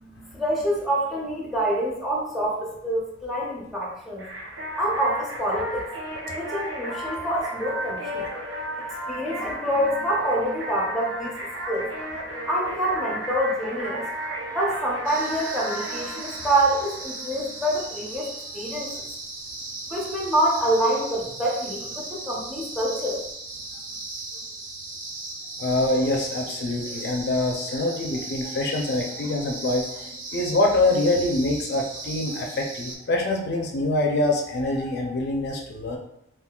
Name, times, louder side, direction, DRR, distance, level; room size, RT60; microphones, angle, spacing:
voice 1, 0.0-4.3 4.8-5.9 6.3-8.3 8.8-11.4 11.7-11.9 12.5-14.1 14.5-19.1 19.9-23.2, right 1 dB, ahead, -3 dB, 0.6 m, -26 dB
sound 1, 4.2-17.6, right 1 dB, 85° right, 0.7 m, -34 dB
sound 2, 15.0-32.9, right 2 dB, 45° right, 0.5 m, -37 dB
voice 2, 25.6-36.0, left 2 dB, 60° left, 1 dB, 0.4 m, -25 dB
3.6 x 2.3 x 2.3 m, 0.80 s
head